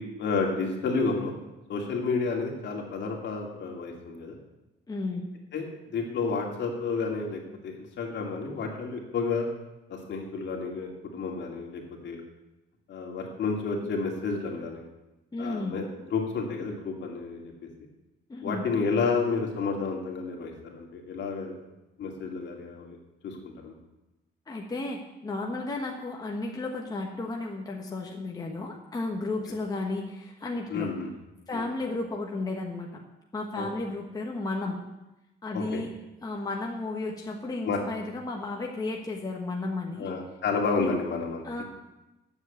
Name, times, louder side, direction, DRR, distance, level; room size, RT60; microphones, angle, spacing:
voice 1, 0.0-1.3 1.7-4.4 5.5-9.5 9.9-12.2 12.9-14.8 15.4-17.4 18.4-21.5 22.0-23.0 23.2-23.7 30.7-31.1 31.5-31.6 33.6-33.7 35.5-35.8 37.6-37.8 40.0-41.6, left 4 dB, 65° left, 1 dB, 2.5 m, -31 dB
voice 2, 4.9-5.2 15.3-15.8 18.3-18.7 24.5-30.9 31.5-33.0 33.3-34.8 35.4-35.9 36.2-40.2 40.8-41.0 41.4-41.6, left 2 dB, 20° left, 0 dB, 1.2 m, -33 dB
9.6 x 7.3 x 8.3 m, 0.99 s
cardioid pair, 155°, 20 cm